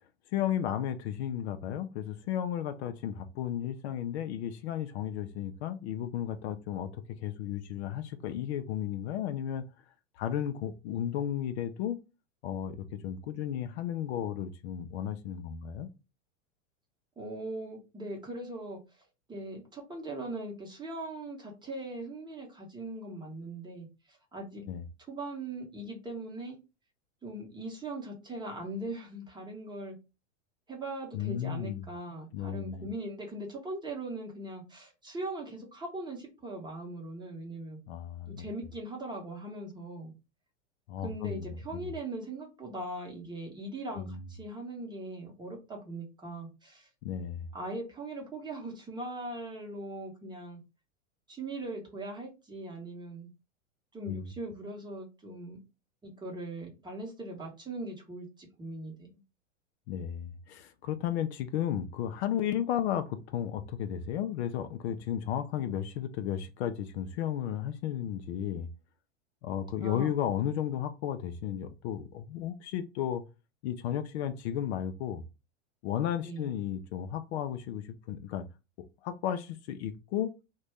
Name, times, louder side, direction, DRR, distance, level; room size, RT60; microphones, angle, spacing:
voice 1, 0.3-9.6 10.2-12.0 12.4-15.9 24.7-24.8 31.1-31.8 32.3-32.9 37.9-38.4 40.9-41.5 41.7-41.9 43.9-44.2 47.0-47.5 54.1-54.3 59.9-68.7 69.4-73.2 73.6-75.2 75.8-78.4 79.0-80.3, left 10 dB, 60° left, 0.5 m, -34 dB
voice 2, 17.2-19.0 19.3-24.6 25.1-26.6 27.2-30.0 30.7-37.8 38.3-40.1 41.0-46.9 47.5-50.6 51.3-53.3 53.9-55.6 56.0-59.1 69.8-70.1 76.2-76.5, right 2 dB, 10° right, 0.8 m, -40 dB
2.5 x 2.2 x 3.1 m
hypercardioid pair, 110°, 37 cm